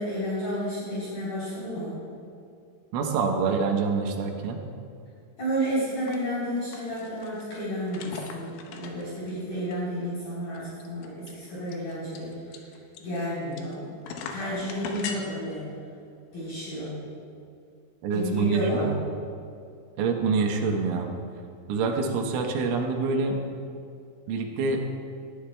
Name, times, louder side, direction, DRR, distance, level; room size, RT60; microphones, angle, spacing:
voice 1, 0.0-2.0 5.4-12.3 13.0-13.9 14.3-15.7 16.3-17.0 18.1-18.9, equal, 50° left, -10 dB, 5.1 m, -31 dB
voice 2, 2.9-4.6 18.0-19.0 20.0-21.1 21.7-23.4 24.3-24.8, right 4 dB, 80° right, 2 dB, 3.4 m, -26 dB
sound 1, 6.0-6.2 6.5-7.4 7.9-9.3 9.7-9.8 10.0-10.1 10.5-13.7 14.0-15.2, left 6 dB, 80° left, 3.3 m, -39 dB
18.5 x 14.5 x 2.2 m, 2.4 s
omnidirectional pair, 5.7 m